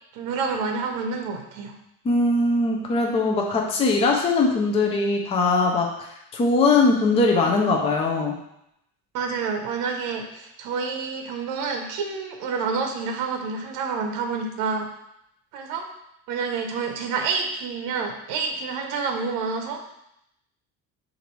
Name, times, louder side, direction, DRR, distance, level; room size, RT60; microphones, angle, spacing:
voice 1, 0.1-1.7 9.1-14.9 15.5-15.8 16.3-19.9, right 5 dB, 65° right, 4 dB, 0.7 m, -28 dB
voice 2, 2.0-8.4, left 3 dB, 20° left, 1 dB, 0.4 m, -21 dB
6.2 x 2.6 x 3.0 m, 0.80 s
cardioid pair, 175°, 34 cm